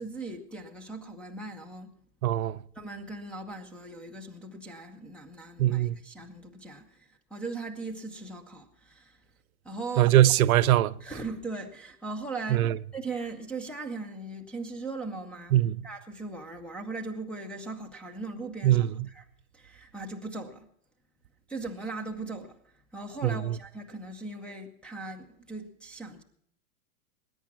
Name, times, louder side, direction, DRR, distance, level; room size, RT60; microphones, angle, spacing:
voice 1, 0.0-1.9 2.7-9.2 9.6-10.1 11.0-12.7 12.9-15.6 15.8-19.3 19.5-20.7 21.5-22.6 22.9-26.2, right 3 dB, 5° left, 0.5 m, -39 dB
voice 2, 2.2-2.6 5.6-5.9 10.0-10.9 12.5-12.8 15.5-15.8 18.6-18.9 23.2-23.3, right 13 dB, 70° right, 0.7 m, -21 dB
20.0 x 9.5 x 5.9 m
hypercardioid pair, 145°, 44 cm